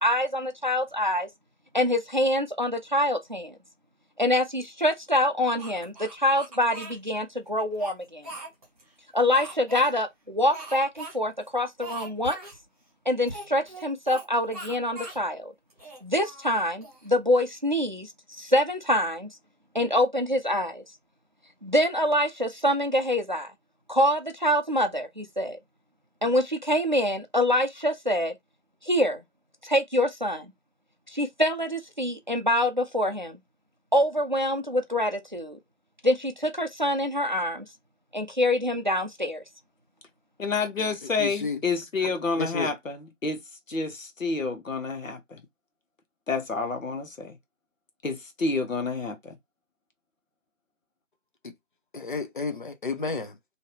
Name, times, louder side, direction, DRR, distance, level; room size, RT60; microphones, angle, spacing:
voice 1, 0.0-1.3 1.7-3.6 4.2-8.3 9.1-12.4 13.1-15.5 16.0-18.1 18.4-19.3 19.7-20.8 21.6-23.5 23.9-25.6 26.2-28.4 28.8-29.2 29.6-30.5 31.1-33.4 33.9-35.6 36.0-37.7 38.1-39.4, left 1 dB, 40° right, 0.4 m, -25 dB
Speech, 5.6-7.0 7.6-8.8 9.3-9.9 10.5-11.1 11.4-11.5 11.8-12.6 13.3-14.3 14.5-15.2 15.7-17.1, right 2 dB, 10° right, 1.5 m, -40 dB
voice 2, 40.4-43.4 43.7-45.4 46.3-47.4 48.0-49.3, left 4 dB, 85° left, 1.2 m, -29 dB
voice 3, 41.2-41.6 42.4-42.7 51.9-53.3, left 4 dB, 40° left, 0.6 m, -31 dB
3.2 x 2.8 x 2.8 m
figure-of-eight pair, 170°, 38 cm